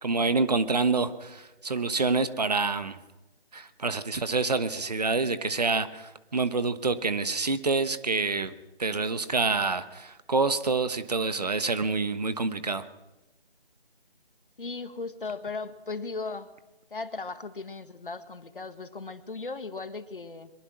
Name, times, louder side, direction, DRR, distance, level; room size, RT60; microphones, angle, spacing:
voice 1, 0.0-3.0 3.5-8.5 8.8-12.8, right 3 dB, 40° right, 12 dB, 1.2 m, -27 dB
voice 2, 14.6-16.5 16.9-20.5, left 3 dB, 55° left, 11 dB, 1.7 m, -37 dB
23.5 x 22.0 x 6.2 m, 1.0 s
figure-of-eight pair, 160°, 31 cm